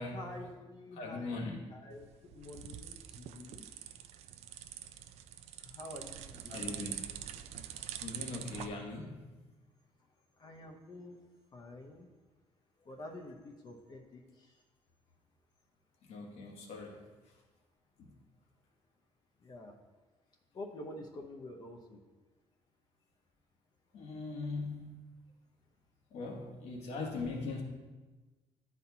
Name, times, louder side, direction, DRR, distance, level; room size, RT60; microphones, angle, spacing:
voice 1, 0.0-3.7 5.6-6.7 10.4-11.2 11.5-12.1 12.8-14.6 19.4-19.7 20.5-22.0, left 1 dB, 40° left, 2 dB, 0.7 m, -48 dB
voice 2, 0.9-1.6 6.5-7.0 8.0-9.3 16.0-17.0 18.0-18.1 23.9-25.0 26.1-27.6, left 3 dB, 75° left, 1 dB, 1.1 m, -40 dB
sound 1, 1.9-8.7, right 10 dB, 90° right, 0.4 m, -45 dB
10.5 x 4.2 x 2.7 m, 1.3 s
cardioid pair, 125°, 11 cm